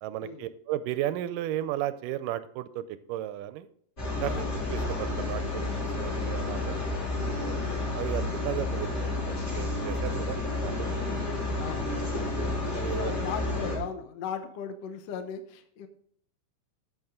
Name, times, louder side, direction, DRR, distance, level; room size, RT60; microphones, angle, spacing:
voice 1, 0.0-3.7 4.2-6.8 7.9-10.9 12.5-13.1, right 13 dB, 80° right, 13 dB, 2.1 m, -34 dB
Opening Sliding Door Closing Sliding Door Twice, 4.0-13.8, left 2 dB, 25° left, 3.4 m, -31 dB
voice 2, 4.3-4.6 7.4-7.9 11.6-11.9 12.9-15.9, left 7 dB, 70° left, 7 dB, 1.6 m, -37 dB
14.5 x 6.2 x 3.7 m, 0.64 s
omnidirectional pair, 4.0 m